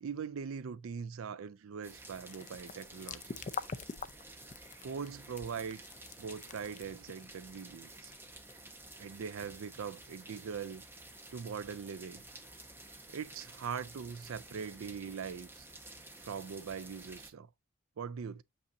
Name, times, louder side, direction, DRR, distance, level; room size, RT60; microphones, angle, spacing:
voice 1, 0.0-3.4 4.8-5.8 6.2-8.1 9.0-10.8 11.3-12.2 13.1-15.7 16.2-17.5 18.0-18.4, right 6 dB, 75° right, 0.4 m, -41 dB
sound 1, 1.8-17.3, right 2 dB, 10° right, 0.8 m, -52 dB
sound 2, 2.2-9.9, left 5 dB, 35° left, 0.4 m, -45 dB
7.0 x 5.4 x 2.6 m
head